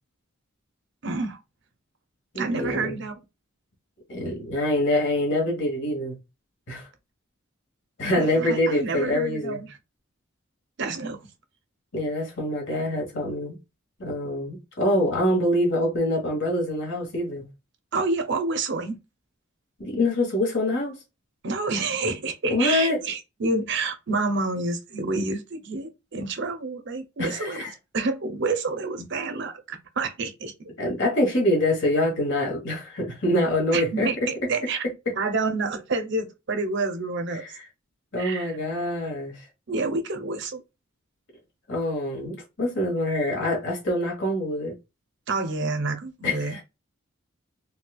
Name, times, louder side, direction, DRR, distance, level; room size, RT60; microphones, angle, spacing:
voice 1, 1.0-1.4 2.4-3.2 8.0-9.8 10.8-11.2 17.9-19.0 21.4-30.7 33.7-34.8 35.2-37.4 38.2-38.6 39.7-40.6 45.3-46.6, right 3 dB, 60° right, 0.7 m, -28 dB
voice 2, 2.3-3.0 4.1-6.2 6.7-6.9 8.0-9.6 11.9-13.6 14.0-17.4 19.8-21.0 22.5-23.0 27.2-27.7 30.8-34.1 37.3-37.4 38.1-39.4 41.7-44.7 46.2-46.6, left 1 dB, 65° left, 1.4 m, -25 dB
4.2 x 2.3 x 2.3 m
head